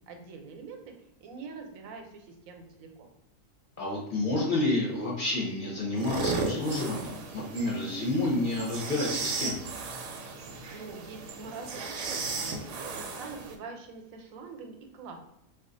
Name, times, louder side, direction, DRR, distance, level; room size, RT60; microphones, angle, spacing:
voice 1, 0.1-3.1 10.7-15.2, right 4 dB, 90° right, 4 dB, 1.0 m, -44 dB
voice 2, 3.8-9.6, left 2 dB, 50° left, -3 dB, 0.7 m, -29 dB
sound 1, 6.0-13.6, right 3 dB, 70° right, 0.8 m, -35 dB
2.4 x 2.3 x 3.7 m, 0.79 s
omnidirectional pair, 1.4 m